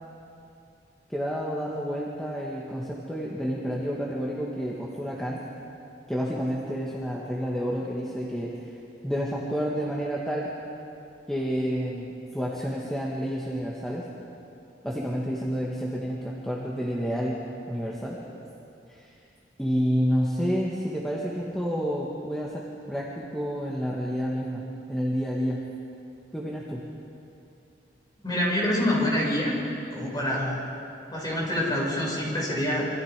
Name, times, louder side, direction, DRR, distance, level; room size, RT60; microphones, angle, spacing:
voice 1, 1.1-5.4 6.1-8.6 9.0-10.5 11.3-14.1 14.8-17.4 17.7-18.2 18.9-19.0 19.6-25.6 26.3-26.9, equal, 5° left, -5 dB, 2.1 m, -29 dB
voice 2, 28.2-29.6 29.9-30.6 31.1-32.9, left 1 dB, 25° left, -3 dB, 6.6 m, -26 dB
27.5 x 26.0 x 5.3 m, 2.7 s
head